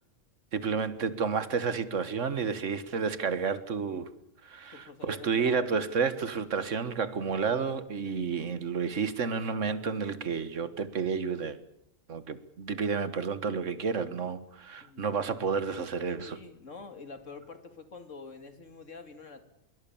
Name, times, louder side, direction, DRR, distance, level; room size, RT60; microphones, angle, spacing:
voice 1, 0.5-4.1 4.4-11.6 12.1-16.4, right 5 dB, 70° right, 1.8 m, -31 dB
voice 2, 4.7-5.8 14.8-15.1 16.3-19.4, left 4 dB, 70° left, 2.9 m, -47 dB
25.0 x 22.5 x 7.2 m
omnidirectional pair, 1.3 m